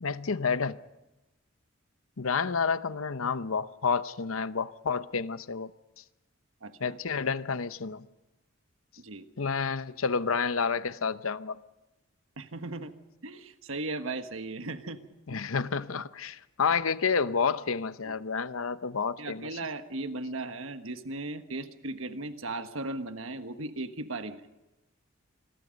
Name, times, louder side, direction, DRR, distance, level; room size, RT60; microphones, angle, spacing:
voice 1, 0.0-0.8 2.2-5.7 6.8-8.1 9.4-11.6 15.3-19.5, left 5 dB, 80° left, 0.8 m, -29 dB
voice 2, 6.6-7.0 9.0-9.3 12.4-12.9 13.2-15.0 15.3-15.4 18.0-18.2 19.2-24.4, right 2 dB, 75° right, 1.4 m, -37 dB
27.0 x 22.0 x 5.3 m
head